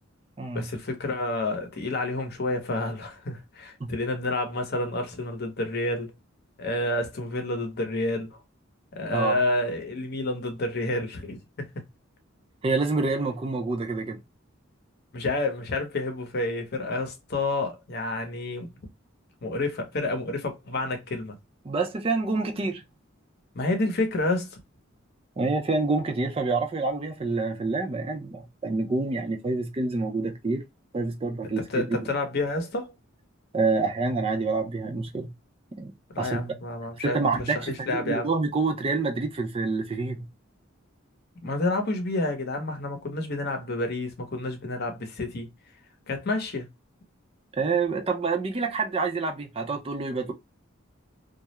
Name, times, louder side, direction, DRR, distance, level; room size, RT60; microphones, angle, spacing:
voice 1, 0.5-6.1 6.6-8.3 8.9-11.7 15.1-18.7 19.4-21.4 23.5-24.6 31.7-32.9 36.1-37.3 37.5-38.3 41.4-45.5 46.1-46.7, left 2 dB, 50° left, 0.7 m, -29 dB
voice 2, 12.6-14.2 21.6-22.8 25.4-30.6 30.9-32.0 33.5-35.3 35.7-35.9 36.2-36.5 37.0-40.3 47.6-50.3, right 3 dB, 30° right, 0.4 m, -27 dB
2.3 x 2.0 x 2.8 m
head